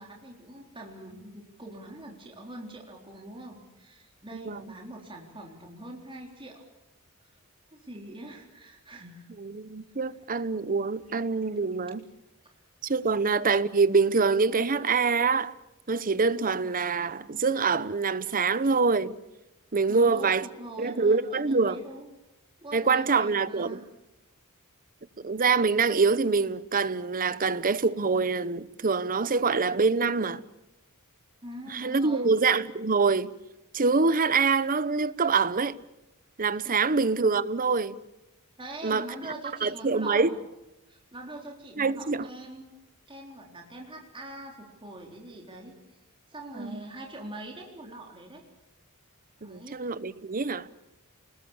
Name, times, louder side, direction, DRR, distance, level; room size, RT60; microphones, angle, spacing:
voice 1, 0.0-6.6 7.7-9.3 13.1-13.2 19.9-22.1 22.6-23.8 31.4-32.3 36.8-36.9 38.6-40.4 40.9-42.7 43.1-45.7 46.3-48.4 49.4-49.8, right 1 dB, 25° right, 3.9 m, -43 dB
voice 2, 9.4-12.0 12.8-15.5 15.9-19.1 19.7-20.4 20.8-21.8 22.7-23.8 25.2-30.4 31.7-33.3 33.7-35.8 36.4-37.9 38.8-39.1 39.6-40.3 41.8-42.3 46.5-46.8 49.4-50.7, right 4 dB, 40° right, 0.9 m, -25 dB
29.0 x 20.5 x 7.3 m
head